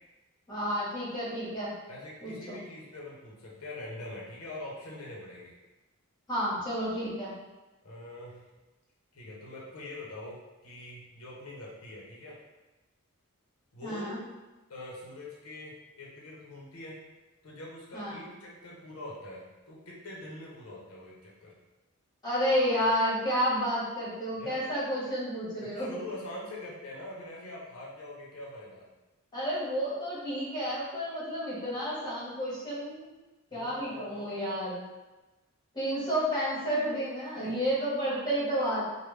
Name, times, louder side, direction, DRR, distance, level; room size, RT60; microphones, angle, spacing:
voice 1, 0.5-1.7 2.2-2.6 6.3-7.3 13.8-14.2 17.9-18.2 22.2-25.9 29.3-33.1 33.5-34.8 35.7-38.8, equal, 20° left, -8 dB, 1.2 m, -31 dB
voice 2, 1.9-5.5 7.8-8.5 9.1-12.4 13.7-14.2 14.7-17.0 17.4-21.5 24.4-24.6 25.6-28.9 33.5-34.5 37.4-37.6, left 2 dB, 90° left, -4 dB, 0.8 m, -44 dB
3.3 x 2.2 x 3.2 m, 1.1 s
head